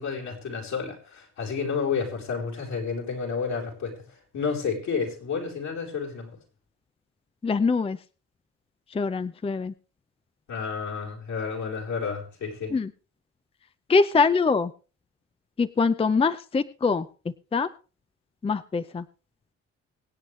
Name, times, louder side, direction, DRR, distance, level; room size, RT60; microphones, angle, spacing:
voice 1, 0.0-3.9 4.3-6.3 10.5-12.7, left 5 dB, 65° left, -1 dB, 4.4 m, -30 dB
voice 2, 7.4-8.0 9.0-9.7 12.7-12.9 13.9-14.7 15.6-17.0 17.5-17.7 18.4-19.0, left 4 dB, 20° left, 13 dB, 0.5 m, -23 dB
24.5 x 8.4 x 3.3 m, 0.34 s
cardioid pair, 90°, 30 cm